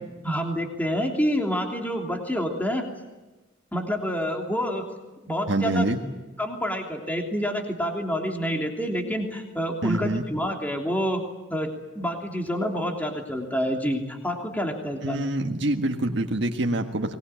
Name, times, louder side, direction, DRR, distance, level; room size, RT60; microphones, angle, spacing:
voice 1, 0.2-2.9 3.7-4.8 5.2-5.8 6.4-11.2 11.5-15.2, equal, 10° left, 1 dB, 3.1 m, -28 dB
voice 2, 5.5-6.0 9.8-10.3 15.0-17.1, right 1 dB, 65° right, 2 dB, 1.7 m, -25 dB
24.0 x 20.5 x 9.1 m, 1.1 s
head